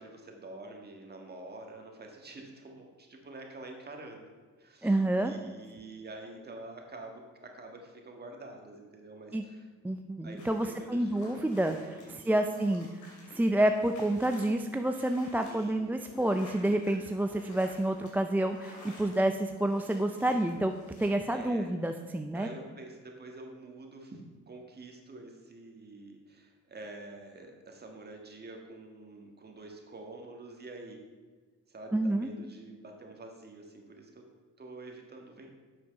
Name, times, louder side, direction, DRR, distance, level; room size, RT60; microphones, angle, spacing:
voice 1, 0.0-9.7 10.2-11.2 12.0-12.5 15.4-15.8 21.3-21.7 22.3-24.2 24.5-31.0 31.7-34.2 34.6-35.5, right 2 dB, 35° right, 2 dB, 1.7 m, -47 dB
voice 2, 4.8-5.3 9.3-9.4 9.8-12.9 13.3-20.7 21.0-22.5 31.9-32.3, right 1 dB, 5° right, 5 dB, 0.4 m, -29 dB
sound 1, 10.4-21.1, left 2 dB, 75° left, 2.9 m, -53 dB
7.7 x 5.9 x 5.3 m, 1.4 s
cardioid pair, 90°, 30 cm